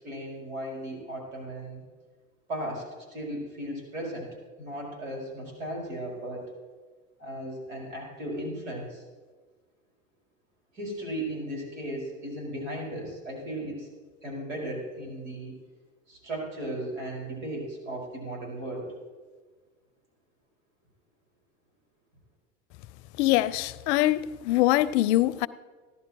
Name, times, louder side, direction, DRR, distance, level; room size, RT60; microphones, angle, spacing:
voice 1, 0.0-1.8 2.5-4.3 4.6-6.5 7.2-9.0 10.7-13.9 14.2-15.6 16.1-18.9, right 1 dB, 80° right, 4.9 m, -36 dB
voice 2, 23.2-25.5, left 16 dB, 60° left, 0.6 m, -23 dB
15.5 x 11.0 x 4.6 m
hypercardioid pair, 90°, 39 cm